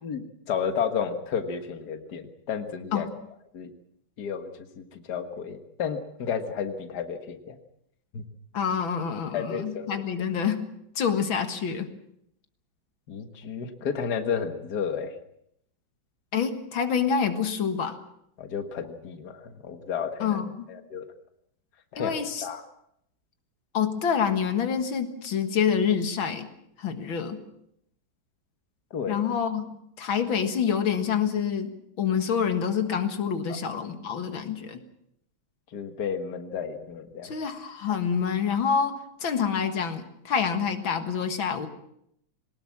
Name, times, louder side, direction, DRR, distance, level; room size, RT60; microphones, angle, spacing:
voice 1, 0.0-3.1 3.5-3.7 4.2-4.5 4.8-7.6 8.1-8.2 9.3-10.0 13.1-15.1 18.4-20.4 20.7-21.1 21.9-22.1 22.4-22.6 28.9-29.2 33.5-33.6 35.7-37.3, left 7 dB, 55° left, 7 dB, 2.0 m, -32 dB
voice 2, 8.5-10.7 11.0-11.9 16.3-18.0 20.2-20.7 22.0-22.5 23.7-26.5 26.8-27.4 29.1-29.7 30.0-31.7 32.0-34.8 37.2-41.7, left 7 dB, 85° left, 7 dB, 2.4 m, -27 dB
22.5 x 19.5 x 7.4 m, 0.75 s
omnidirectional pair, 2.1 m